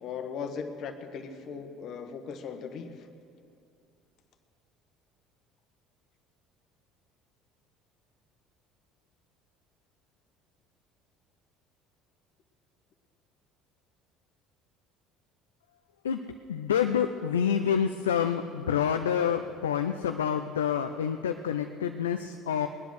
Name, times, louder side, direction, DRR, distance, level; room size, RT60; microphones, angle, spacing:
voice 1, 0.0-2.9, left 6 dB, 55° left, 7 dB, 1.3 m, -38 dB
voice 2, 16.5-22.7, left 8 dB, 80° left, 7 dB, 0.5 m, -28 dB
20.0 x 10.5 x 6.4 m, 2.6 s
figure-of-eight pair, 60°, 0 cm